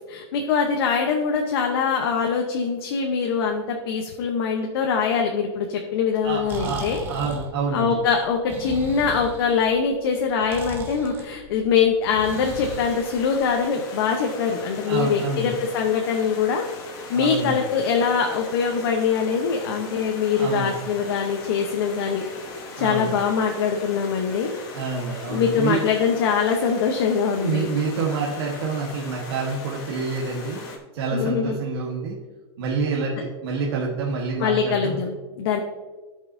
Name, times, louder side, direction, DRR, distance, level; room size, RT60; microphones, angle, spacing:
voice 1, 0.1-7.0 7.7-16.7 17.1-22.2 22.8-24.5 25.3-27.7 31.1-31.6 34.4-35.6, left 6 dB, 60° left, 2 dB, 0.9 m, -23 dB
Breathing, 6.2-13.6, right 3 dB, 15° right, 0.8 m, -37 dB
voice 2, 6.2-8.0 14.9-15.6 17.1-17.6 20.4-20.7 22.8-23.2 24.7-25.8 27.3-30.6 30.9-32.2 32.6-35.0, right 4 dB, 60° right, -2 dB, 1.3 m, -27 dB
Stream, 12.2-30.8, left 3 dB, 25° left, 1.1 m, -39 dB
14.0 x 5.5 x 2.7 m, 1.3 s
supercardioid pair, 175°, 14 cm